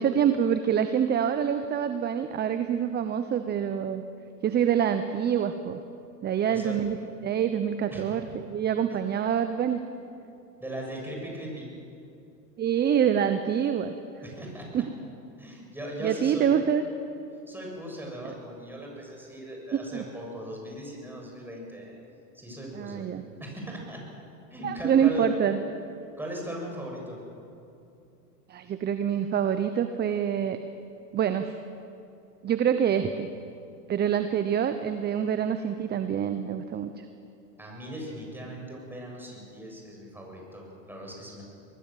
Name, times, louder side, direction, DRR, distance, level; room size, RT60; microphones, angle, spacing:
voice 1, 0.0-4.0 4.4-5.8 6.2-9.8 12.6-13.9 14.7-14.9 16.0-16.8 19.9-20.0 22.7-23.2 24.6-25.6 28.5-30.6 31.1-31.5 32.4-33.3 33.9-37.0, right 8 dB, 20° right, 9 dB, 0.9 m, -26 dB
voice 2, 10.6-11.7 14.2-14.8 15.4-16.5 17.5-22.0 22.3-23.1 23.4-24.1 24.5-25.3 26.2-27.2 37.6-41.4, equal, 5° right, -1 dB, 7.3 m, -39 dB
23.5 x 20.0 x 7.5 m, 2.7 s
hypercardioid pair, 115°, 49 cm